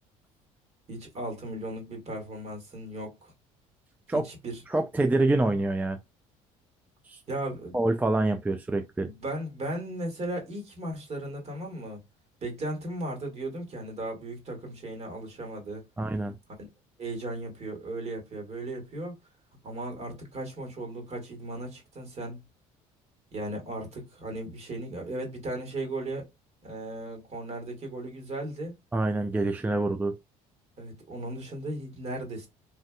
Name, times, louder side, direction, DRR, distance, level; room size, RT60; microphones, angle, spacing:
voice 1, 0.9-3.3 4.1-4.6 7.3-7.8 9.1-12.0 12.4-15.8 16.6-16.7 17.0-19.2 19.6-22.4 23.3-26.3 26.6-28.7 30.8-32.5, right 1 dB, 45° right, 2.0 m, -36 dB
voice 2, 4.7-6.0 7.1-7.2 7.7-9.1 16.0-16.3 28.9-30.2, right 2 dB, 10° right, 0.4 m, -26 dB
3.3 x 2.6 x 2.2 m
supercardioid pair, 80°, 15 cm